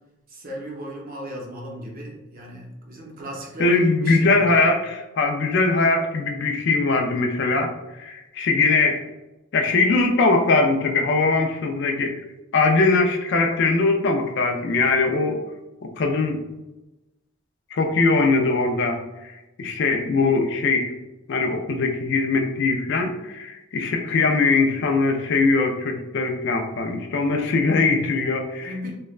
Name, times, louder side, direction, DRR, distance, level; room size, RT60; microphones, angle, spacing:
voice 1, 0.3-4.6 28.6-28.9, equal, 45° right, -1 dB, 0.6 m, -35 dB
voice 2, 3.6-7.7 8.0-9.0 9.5-12.1 12.5-15.4 16.0-16.4 17.7-19.0 19.2-19.3 19.6-20.9 21.3-28.9, left 3 dB, 55° left, 4 dB, 0.4 m, -21 dB
3.1 x 2.1 x 2.3 m, 1.0 s
head